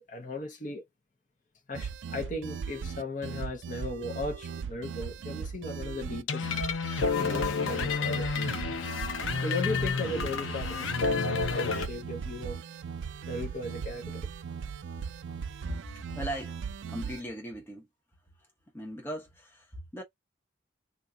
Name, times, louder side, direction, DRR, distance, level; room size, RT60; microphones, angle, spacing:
voice 1, 0.1-0.8 1.7-6.5 7.2-8.6 9.4-12.6 13.2-14.2, left 2 dB, 40° left, 0.8 m, -37 dB
sound 1, 1.7-17.2, right 6 dB, 75° right, 0.4 m, -38 dB
sound 2, 6.3-11.9, left 5 dB, 90° left, 0.6 m, -30 dB
voice 2, 15.6-16.6 16.9-17.9 18.7-20.0, equal, 10° left, 0.8 m, -38 dB
2.6 x 2.4 x 3.7 m
head